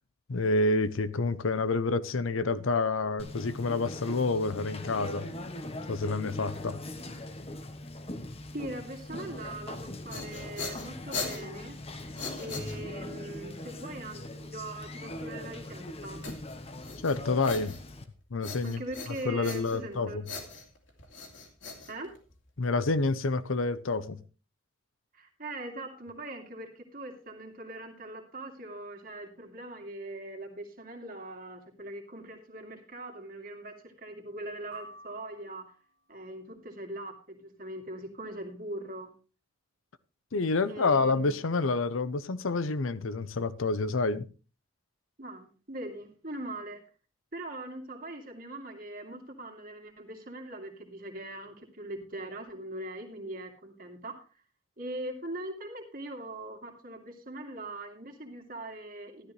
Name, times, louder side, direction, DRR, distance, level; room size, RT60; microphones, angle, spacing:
voice 1, 0.3-5.3 5.9-6.8 17.0-17.7 18.3-18.8 19.3-20.2 22.6-24.2 40.3-44.3, left 3 dB, 80° left, 0.7 m, -28 dB
Conversation, 3.2-18.0, left 1 dB, 30° left, 1.0 m, -41 dB
voice 2, 8.5-16.2 18.6-20.2 21.9-22.1 25.1-35.7 36.1-39.1 40.6-41.4 45.2-46.8 47.3-54.2 54.8-59.3, right 1 dB, 45° right, 2.4 m, -41 dB
sound 1, 9.8-13.2 16.2-18.1 18.4-19.9 20.2-22.5, left 4 dB, 60° left, 2.7 m, -40 dB
sound 2, 34.7-36.0, equal, 70° right, 1.1 m, -50 dB
13.0 x 12.0 x 3.2 m
head